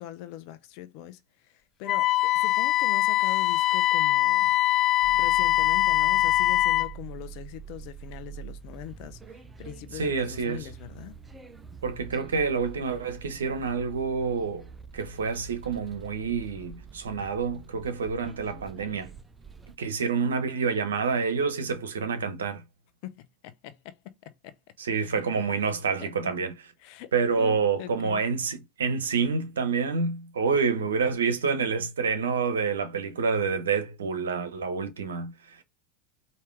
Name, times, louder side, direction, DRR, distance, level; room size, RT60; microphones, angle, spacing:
voice 1, 0.0-4.5 5.1-11.2 23.0-24.6 24.9-25.2 26.0-26.1 26.8-28.2, left 13 dB, 55° left, 0.8 m, -42 dB
Wind instrument woodwind instrument, 1.9-6.9, left 16 dB, 35° left, 0.4 m, -22 dB
sound 1, 5.0-19.8, right 7 dB, 15° right, 0.8 m, -45 dB
voice 2, 9.9-10.7 11.8-19.1 19.8-22.6 24.8-26.5 27.1-35.6, right 5 dB, 80° right, 0.9 m, -28 dB
4.9 x 2.8 x 3.3 m
hypercardioid pair, 80°, 0 cm